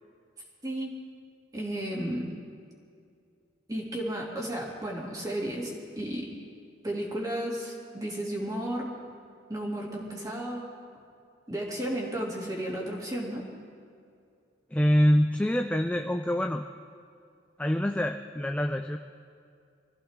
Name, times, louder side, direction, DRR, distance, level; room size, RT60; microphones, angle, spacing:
voice 1, 0.6-1.1 1.5-2.4 3.7-6.3 6.8-9.0 9.5-10.7 11.5-13.5, right 1 dB, 20° right, -4 dB, 2.8 m, -33 dB
voice 2, 14.7-16.6 17.6-19.0, equal, 5° left, 5 dB, 0.4 m, -25 dB
25.0 x 15.0 x 3.7 m, 2.4 s
head